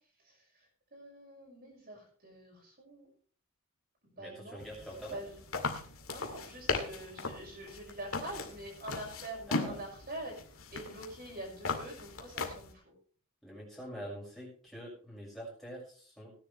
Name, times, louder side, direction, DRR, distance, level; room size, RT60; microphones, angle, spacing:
voice 1, 0.2-0.7 0.9-3.1 4.0-4.6 5.1-5.4 6.1-10.3 10.7-12.9, right 1 dB, 45° right, -2 dB, 6.5 m, -45 dB
voice 2, 4.2-5.2 9.5-9.8 13.4-16.3, equal, ahead, -5 dB, 6.3 m, -45 dB
sound 1, 4.6-12.7, left 3 dB, 80° left, 2.1 m, -38 dB
18.5 x 10.5 x 3.4 m, 0.43 s
head